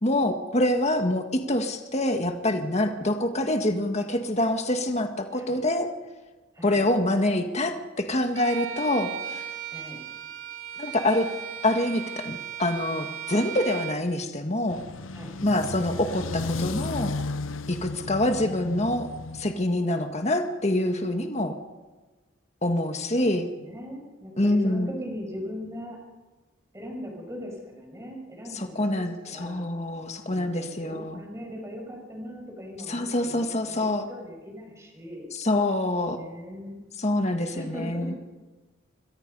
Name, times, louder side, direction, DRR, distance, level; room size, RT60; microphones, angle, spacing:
voice 1, 0.0-5.9 6.6-9.4 10.8-11.3 11.6-14.8 15.4-17.1 17.7-21.6 22.6-23.5 24.4-24.9 28.5-31.2 32.9-34.0 35.3-36.2 37.0-38.1, left 1 dB, 35° left, 5 dB, 1.7 m, -26 dB
voice 2, 5.3-5.7 6.5-6.8 9.7-10.0 15.1-15.4 19.7-20.2 23.1-26.0 26.7-29.7 30.2-35.3 36.1-36.8 37.5-38.2, equal, 15° right, 0 dB, 6.0 m, -40 dB
Bowed string instrument, 8.3-14.1, right 9 dB, 80° right, 2.6 m, -37 dB
sound 1, 14.7-19.6, left 3 dB, 75° left, 0.8 m, -34 dB
27.0 x 24.0 x 5.5 m, 1.2 s
head